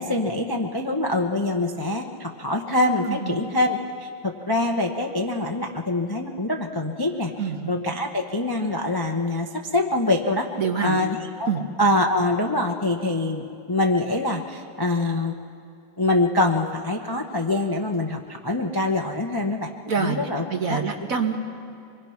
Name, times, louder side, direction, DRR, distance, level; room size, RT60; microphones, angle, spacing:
voice 1, 0.0-10.5 10.8-11.1 11.4-11.5 11.8-15.3 16.0-19.7 20.0-20.8, left 2 dB, 20° left, 2 dB, 0.7 m, -24 dB
voice 2, 3.1-3.5 7.4-7.8 10.6-11.0 11.5-11.6 19.9-20.2 20.5-21.4, right 6 dB, 45° right, 3 dB, 1.6 m, -26 dB
26.5 x 22.0 x 5.9 m, 2.5 s
omnidirectional pair, 2.3 m